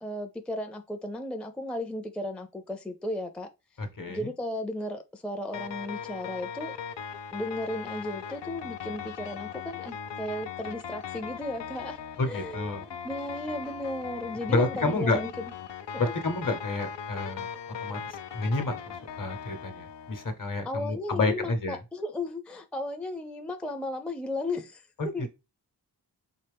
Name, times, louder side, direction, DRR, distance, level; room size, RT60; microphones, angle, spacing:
voice 1, 0.0-3.5 4.1-6.8 7.3-12.0 12.3-15.4 15.9-16.1 20.6-25.3, left 1 dB, 5° left, 0.5 m, -35 dB
voice 2, 3.8-4.3 12.2-12.8 14.5-15.2 16.0-17.5 17.8-18.0 18.3-21.8 25.0-25.1, left 2 dB, 50° left, 1.0 m, -29 dB
sound 1, 5.5-20.3, left 7 dB, 80° left, 0.5 m, -39 dB
4.3 x 3.2 x 3.5 m
wide cardioid pair, 75°, 42 cm